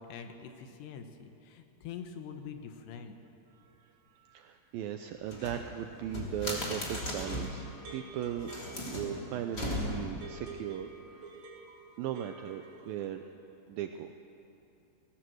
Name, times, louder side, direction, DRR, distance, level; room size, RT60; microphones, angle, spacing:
voice 1, 0.0-3.1, left 7 dB, 80° left, 6 dB, 3.3 m, -45 dB
voice 2, 3.5-8.5 8.9-11.2 12.0-13.2 13.7-14.1, right 10 dB, 85° right, 7 dB, 2.1 m, -38 dB
sound 1, 5.2-7.6 8.3-10.2, left 1 dB, 25° left, 3.3 m, -37 dB
sound 2, 7.1-13.0, right 3 dB, 60° right, 4.3 m, -50 dB
19.0 x 18.5 x 7.9 m, 2.8 s
omnidirectional pair, 4.9 m